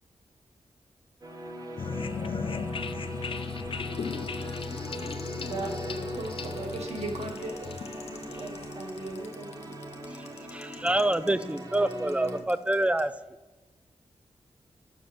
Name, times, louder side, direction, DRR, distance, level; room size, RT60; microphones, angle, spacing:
sound 1, 1.2-12.4, right 1 dB, 35° right, 1.3 m, -40 dB
sound 2, 1.8-9.3, left 5 dB, 55° left, 0.5 m, -36 dB
sound 3, 3.9-13.0, left 6 dB, 80° left, 1.1 m, -50 dB
voice 1, 4.3-5.8 9.0-11.1, left 2 dB, 30° left, 2 dB, 1.0 m, -49 dB
voice 2, 5.3-9.8, right 2 dB, 80° right, 2 dB, 1.7 m, -38 dB
voice 3, 10.5-13.1, right 1 dB, 10° right, 14 dB, 0.4 m, -26 dB
7.7 x 5.7 x 5.2 m, 1.1 s
cardioid pair, 80°, 11 cm